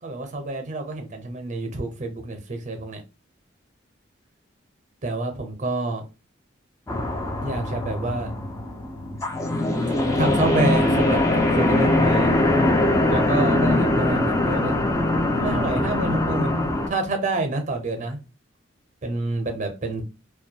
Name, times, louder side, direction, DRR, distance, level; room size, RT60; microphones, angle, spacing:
voice 1, 0.0-3.0 5.0-6.0 7.4-8.3 9.9-12.4 13.1-14.8 15.3-18.2 19.0-20.0, right 2 dB, 40° right, 0.6 m, -28 dB
sound 1, 6.9-16.9, left 1 dB, 15° left, 0.4 m, -22 dB
2.2 x 2.2 x 2.7 m
head